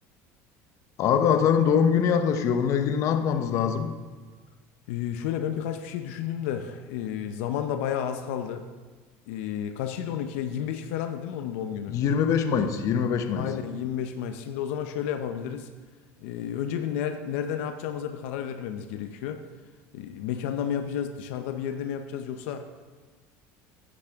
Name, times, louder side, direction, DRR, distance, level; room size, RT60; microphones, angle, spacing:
voice 1, 1.0-4.0 11.9-13.5, left 7 dB, 50° left, 8 dB, 0.8 m, -23 dB
voice 2, 4.9-8.6 9.3-12.0 13.3-15.7 16.2-19.4 19.9-22.6, left 9 dB, 85° left, 7 dB, 0.6 m, -31 dB
9.9 x 8.5 x 3.5 m, 1.4 s
supercardioid pair, 120°, 7 cm